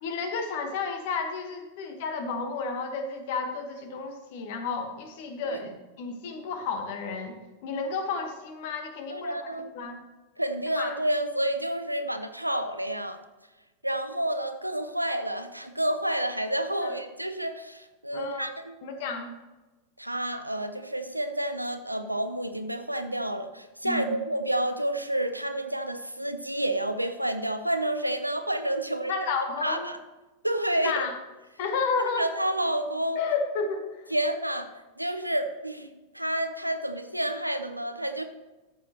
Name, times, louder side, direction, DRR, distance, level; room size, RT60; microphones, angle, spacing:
voice 1, 0.0-7.3 7.6-9.4 9.7-10.0 10.8-10.9 16.8-16.9 18.1-18.5 18.8-19.3 23.8-24.2 29.1-29.9 30.8-31.1 31.6-32.3 33.1-33.9, left 4 dB, 50° left, 6 dB, 1.3 m, -31 dB
voice 2, 9.1-9.8 10.4-13.2 13.8-18.7 20.0-29.1 29.6-30.0 30.4-31.0 32.1-33.2 34.1-34.7 35.0-38.2, right 1 dB, 90° right, 9 dB, 0.6 m, -29 dB
13.5 x 6.7 x 2.9 m, 1.1 s
figure-of-eight pair, 90°, 0 cm